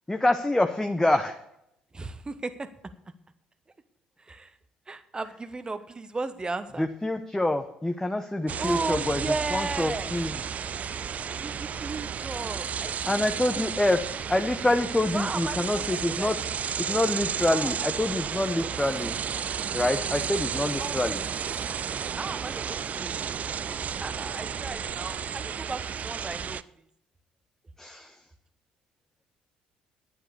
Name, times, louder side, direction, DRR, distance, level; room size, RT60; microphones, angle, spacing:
voice 1, 0.1-1.4 6.8-10.4 11.1-11.3 13.1-14.0 14.3-16.4 16.8-19.2 19.7-21.2 27.8-28.2, left 1 dB, 10° left, 6 dB, 0.9 m, -26 dB
voice 2, 1.9-2.7 4.3-4.5 4.9-6.8 8.6-10.1 11.4-13.1 13.6-13.8 15.1-15.8 16.2-16.4 16.9-17.0 17.5-17.7 20.8-21.0 22.2-23.2 23.5-23.6 24.0-26.6, right 3 dB, 20° right, 12 dB, 1.2 m, -35 dB
sound 1, 8.5-26.6, right 7 dB, 40° right, 0.4 m, -32 dB
10.0 x 9.1 x 6.7 m, 0.79 s
hypercardioid pair, 50°, 4 cm